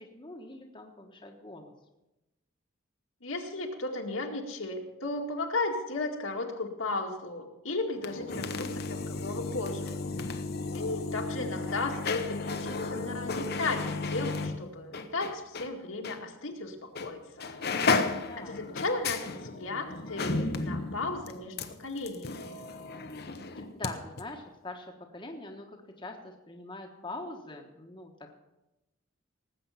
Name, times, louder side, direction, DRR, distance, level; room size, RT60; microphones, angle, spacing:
voice 1, 0.0-1.7 11.3-11.4 18.3-18.6 23.5-28.3, left 2 dB, 25° left, 1 dB, 1.3 m, -43 dB
voice 2, 3.2-10.0 10.7-17.5 18.5-22.6, left 3 dB, 75° left, 1 dB, 2.0 m, -35 dB
sound 1, 7.9-15.7 16.0-16.2 17.0-17.1 17.4-23.9 24.2-24.3, left 3 dB, 50° left, 0.9 m, -33 dB
18.5 x 8.2 x 5.7 m, 0.94 s
head